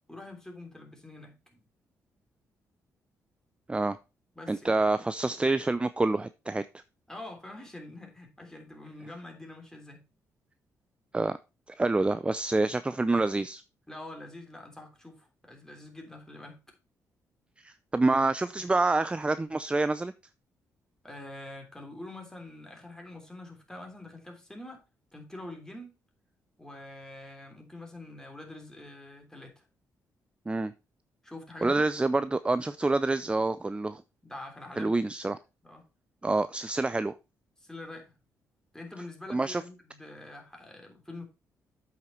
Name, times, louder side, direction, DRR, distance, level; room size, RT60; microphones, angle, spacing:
voice 1, 0.1-1.6 4.4-4.8 7.1-10.1 13.9-16.6 21.0-24.8 25.1-25.9 26.6-29.7 31.2-31.9 34.2-35.0 35.6-35.8 37.6-38.1 38.7-41.2, left 2 dB, 10° left, 3.4 m, -45 dB
voice 2, 4.5-6.6 11.1-11.4 11.8-13.6 17.6-20.1 30.5-30.7 31.6-34.0 34.8-35.4 36.2-37.1 39.3-39.6, right 2 dB, 15° right, 0.5 m, -27 dB
8.0 x 5.8 x 4.4 m
supercardioid pair, 65°, 7 cm